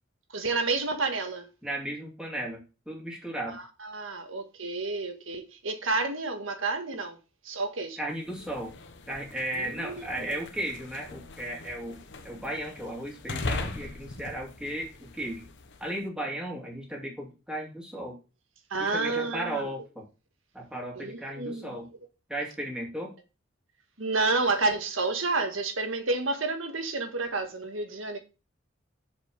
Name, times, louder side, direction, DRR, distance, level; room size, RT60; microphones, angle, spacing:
voice 1, 0.3-1.5 3.6-7.2 7.4-8.0 9.5-10.3 18.7-19.7 20.9-21.8 24.0-28.2, right 3 dB, 70° right, 1.7 m, -30 dB
voice 2, 1.6-2.6 2.9-3.6 8.0-8.7 9.1-15.4 15.8-18.2 18.8-20.0 20.5-21.9 22.3-23.1, right 1 dB, 5° right, 2.7 m, -35 dB
sound 1, 8.1-16.0, left 3 dB, 60° left, 1.1 m, -40 dB
7.2 x 5.1 x 6.4 m
head